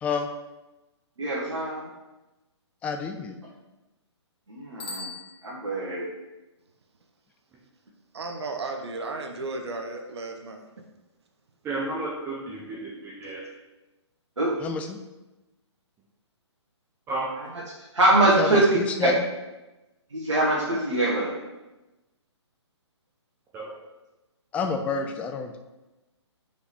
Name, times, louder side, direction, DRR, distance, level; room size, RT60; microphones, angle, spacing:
voice 1, 1.2-1.9 4.5-5.1 5.4-6.1 14.4-14.5 17.8-19.1 20.1-21.3, right 1 dB, 80° right, -6 dB, 1.5 m, -23 dB
voice 2, 2.8-3.4 14.6-15.0 18.4-19.2 24.5-25.6, left 5 dB, 10° left, 6 dB, 0.3 m, -29 dB
Bicycle bell, 4.7-6.1, left 3 dB, 55° left, 1.5 m, -41 dB
voice 3, 8.1-10.6, right 3 dB, 65° right, 4 dB, 1.0 m, -34 dB
voice 4, 11.6-13.4 17.1-17.3 23.5-23.8, right 2 dB, 15° right, -5 dB, 0.9 m, -32 dB
5.1 x 4.9 x 4.2 m, 1.1 s
figure-of-eight pair, 135°, 15 cm